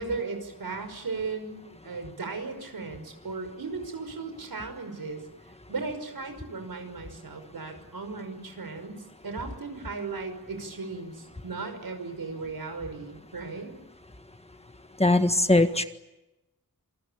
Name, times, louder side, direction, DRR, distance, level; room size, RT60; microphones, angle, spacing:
voice 1, 0.0-5.2 5.7-13.7, right 4 dB, 90° right, 7 dB, 5.7 m, -36 dB
voice 2, 15.0-15.8, left 2 dB, 15° left, 8 dB, 1.6 m, -20 dB
27.0 x 22.5 x 8.8 m, 0.96 s
wide cardioid pair, 90°, 35 cm